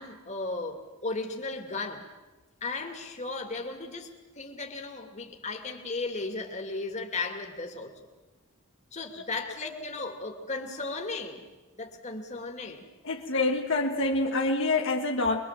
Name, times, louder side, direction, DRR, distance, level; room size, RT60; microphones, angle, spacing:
voice 1, 0.0-2.1 2.6-7.9 8.9-11.5 11.7-12.9, left 3 dB, 35° left, 3 dB, 2.6 m, -35 dB
voice 2, 13.0-15.4, left 2 dB, 65° left, 1 dB, 1.6 m, -26 dB
25.0 x 22.0 x 7.6 m, 1.2 s
head